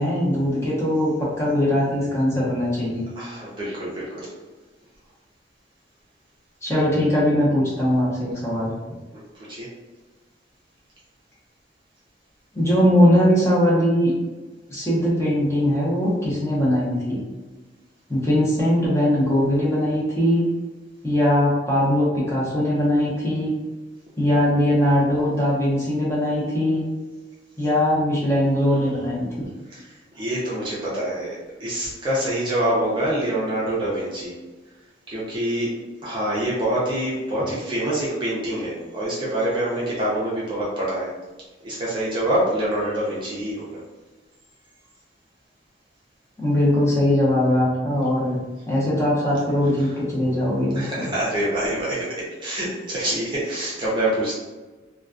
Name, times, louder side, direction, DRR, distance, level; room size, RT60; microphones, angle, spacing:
voice 1, 0.0-3.1 6.6-8.7 12.5-14.1 14.7-17.2 18.1-20.5 21.0-23.5 24.2-26.8 27.6-29.5 46.4-48.4 48.7-50.8, left 1 dB, 15° left, -8 dB, 0.7 m, -20 dB
voice 2, 3.2-4.3 9.1-9.2 9.5-9.7 29.7-34.3 35.1-35.7 36.0-41.1 41.6-43.8 49.8-49.9 50.7-54.3, right 1 dB, 25° right, -7 dB, 0.5 m, -26 dB
2.3 x 2.2 x 2.4 m, 1.2 s
head